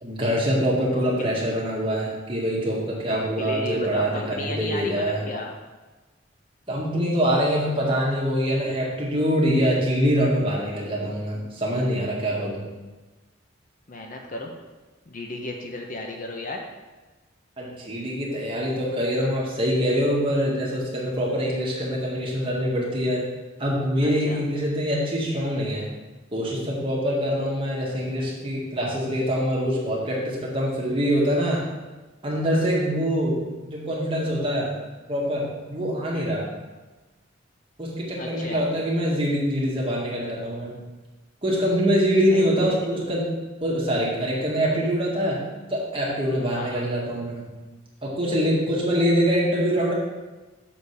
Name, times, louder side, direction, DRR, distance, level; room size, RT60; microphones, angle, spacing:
voice 1, 0.0-5.2 6.7-12.7 17.6-23.2 23.6-25.9 26.3-31.6 32.2-33.4 33.7-34.7 35.1-36.5 37.8-40.7 41.4-43.3 43.6-45.4 45.7-47.5 48.0-49.9, equal, 25° right, -4 dB, 2.0 m, -24 dB
voice 2, 0.9-1.3 3.1-5.5 13.9-14.5 15.1-16.6 24.0-24.4 31.0-31.2 36.1-36.3 38.2-38.6 42.3-42.9 46.6-46.9, left 2 dB, 45° left, 2 dB, 0.9 m, -34 dB
7.0 x 5.3 x 6.7 m, 1.2 s
head